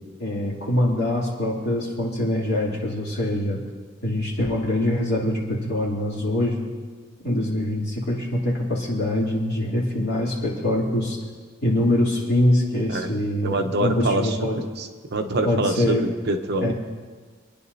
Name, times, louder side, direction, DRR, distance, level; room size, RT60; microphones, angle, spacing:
voice 1, 0.2-3.6 4.0-6.7 7.2-11.2 11.6-14.6 15.4-16.1 16.6-16.7, left 1 dB, 55° left, -5 dB, 2.9 m, -24 dB
voice 2, 13.4-14.3 14.8-16.7, right 2 dB, 55° right, 5 dB, 0.9 m, -25 dB
27.5 x 10.0 x 2.8 m, 1.5 s
head